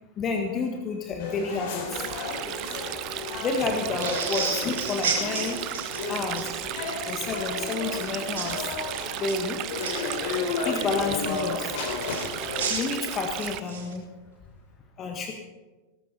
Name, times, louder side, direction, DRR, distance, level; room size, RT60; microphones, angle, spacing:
voice 1, 0.2-2.0 3.4-5.6 6.1-6.4 7.1-8.7 9.2-9.6 10.6-11.7 12.7-14.0 15.0-15.3, left 4 dB, 30° left, 3 dB, 1.6 m, -30 dB
sound 1, 1.2-12.7, left 4 dB, 50° left, 3.4 m, -33 dB
Stream, 1.9-13.6, right 16 dB, 40° right, 0.5 m, -35 dB
sound 2, 4.0-6.5 8.4-8.6 9.1-9.9 12.1-13.9, right 5 dB, 60° right, 3.3 m, -31 dB
18.0 x 14.0 x 4.2 m, 1.2 s
figure-of-eight pair, 90°, 0 cm